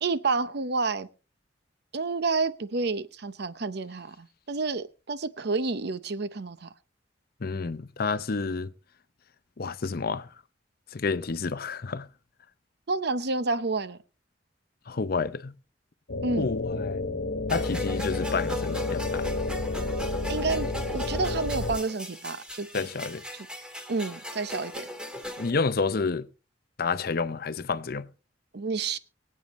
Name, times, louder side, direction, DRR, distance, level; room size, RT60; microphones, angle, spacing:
voice 1, 0.0-1.1 1.9-6.7 12.9-14.0 16.2-16.5 20.3-22.7 23.3-23.5 23.9-24.9 28.5-29.0, right 3 dB, 65° right, 0.8 m, -29 dB
voice 2, 7.4-8.7 9.6-10.3 10.9-12.1 14.9-15.5 16.4-17.1 17.5-19.3 22.7-23.2 25.4-26.3 26.8-28.1, left 4 dB, 55° left, 0.7 m, -29 dB
sound 1, 16.1-21.8, left 2 dB, 80° left, 1.2 m, -30 dB
sound 2, 17.5-25.5, left 1 dB, 5° right, 1.8 m, -38 dB
24.0 x 8.6 x 3.1 m
head